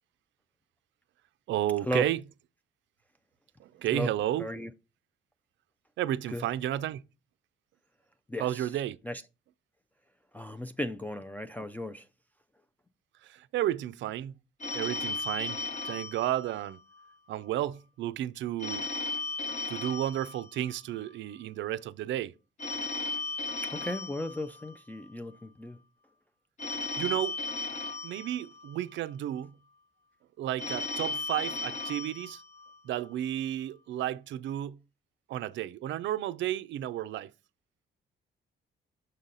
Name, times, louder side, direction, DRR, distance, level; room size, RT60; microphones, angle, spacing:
voice 1, 1.5-2.2 3.6-4.5 6.0-7.0 8.4-9.0 13.2-14.3 14.7-16.8 17.3-18.9 19.7-22.3 27.0-27.4 28.0-29.6 30.4-32.4 32.8-34.8 35.3-37.3, right 12 dB, 70° right, 0.4 m, -32 dB
voice 2, 4.4-4.7 6.3-6.4 8.3-8.7 9.0-9.2 10.3-12.1 23.6-25.8, left 1 dB, 10° left, 0.3 m, -35 dB
Telephone, 14.6-17.1 18.6-21.1 22.6-25.1 26.6-29.1 30.6-33.1, left 3 dB, 35° left, 0.9 m, -36 dB
6.6 x 4.0 x 3.9 m
cardioid pair, 90°, 20 cm